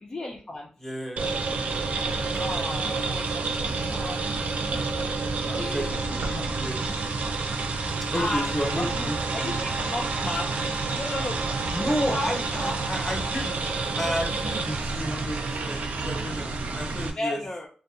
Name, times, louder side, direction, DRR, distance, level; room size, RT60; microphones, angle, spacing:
voice 1, 0.0-0.7 2.3-5.3 5.6-6.1 6.4-6.7 8.2-8.5 8.7-10.5 10.9-11.5 12.1-12.8 16.9-17.7, left 1 dB, 40° left, -1 dB, 0.4 m, -35 dB
voice 2, 0.8-2.3 5.4-6.8 8.1-9.7 11.7-13.6 13.9-17.4, equal, 10° left, 0 dB, 0.8 m, -32 dB
sound 1, 1.2-17.1, right 3 dB, 80° right, 0.4 m, -29 dB
2.6 x 2.3 x 2.4 m, 0.39 s
cardioid pair, 75°, 2 cm